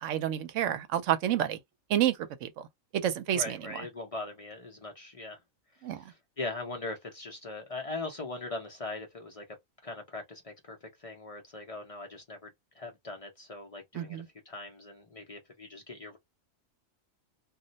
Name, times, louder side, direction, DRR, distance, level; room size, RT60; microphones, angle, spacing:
voice 1, 0.0-1.6 1.9-2.7 2.9-3.6 5.8-6.0 13.9-14.3, right 11 dB, 75° right, 0.9 m, -29 dB
voice 2, 3.3-5.4 5.9-9.4 9.8-12.5 12.7-16.2, left 2 dB, 55° left, 0.4 m, -40 dB
2.4 x 2.0 x 3.9 m
omnidirectional pair, 1.4 m